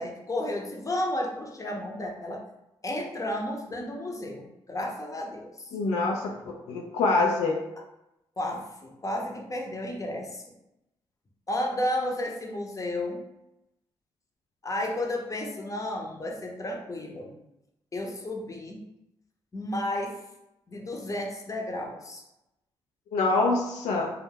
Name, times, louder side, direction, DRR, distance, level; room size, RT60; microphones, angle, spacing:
voice 1, 0.0-2.4 2.8-5.7 8.4-10.4 11.5-13.2 14.6-17.4 17.9-18.8 19.5-20.2 20.7-22.2, left 1 dB, 30° left, 1 dB, 0.7 m, -32 dB
voice 2, 5.7-7.6 23.1-24.1, left 3 dB, 80° left, 0 dB, 0.4 m, -25 dB
2.3 x 2.1 x 3.4 m, 0.89 s
supercardioid pair, 45°, 11 cm